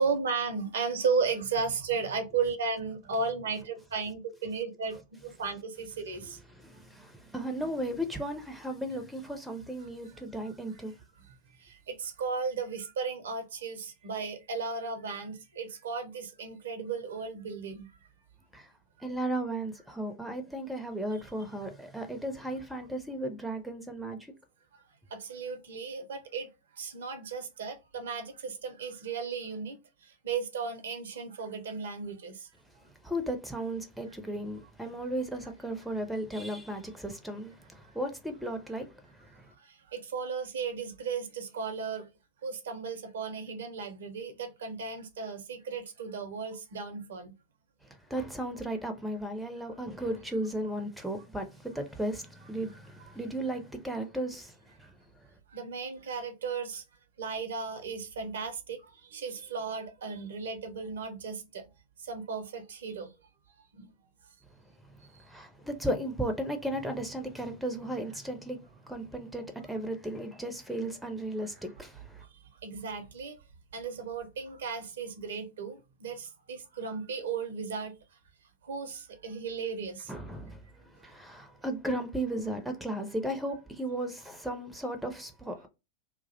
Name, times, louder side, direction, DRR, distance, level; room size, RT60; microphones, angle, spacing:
voice 1, 0.0-6.4 9.8-10.8 11.2-17.9 24.7-24.8 25.1-32.5 39.6-42.1 42.4-47.3 53.1-53.2 55.5-56.8 57.2-61.7 62.0-63.1 63.7-63.9 65.1-65.2 71.4-71.5 72.6-73.4 73.7-77.9 78.6-80.1, right 5 dB, 65° right, 0.5 m, -35 dB
voice 2, 6.6-10.9 18.5-18.6 19.0-24.2 33.0-37.5 37.9-38.9 48.1-54.5 65.3-68.6 68.9-71.9 80.1-80.6 81.0-85.7, right 1 dB, ahead, 0.5 m, -35 dB
2.3 x 2.0 x 2.6 m
figure-of-eight pair, 90°, 0 cm